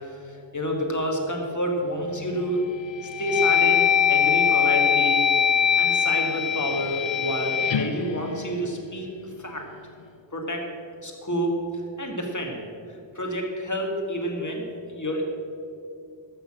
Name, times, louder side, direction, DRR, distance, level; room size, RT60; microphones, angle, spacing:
voice 1, 0.0-2.6 3.0-5.2 5.8-9.7 10.3-10.7 11.0-11.5 12.0-12.6 13.1-15.2, equal, 40° left, 1 dB, 2.2 m, -29 dB
sound 1, 2.0-2.4 2.9-9.1, left 8 dB, 75° left, 0.6 m, -23 dB
12.0 x 6.9 x 7.5 m, 2.5 s
wide cardioid pair, 50°, 46 cm